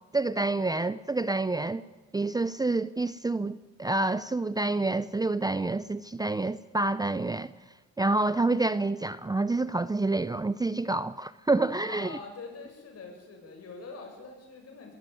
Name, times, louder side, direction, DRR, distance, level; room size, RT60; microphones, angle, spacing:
voice 1, 0.1-1.8 2.1-7.5 8.0-12.2, right 2 dB, 15° right, 0.6 m, -28 dB
voice 2, 11.8-14.9, left 4 dB, 55° left, 7.7 m, -44 dB
20.5 x 16.5 x 9.2 m
cardioid pair, 90°, 30 cm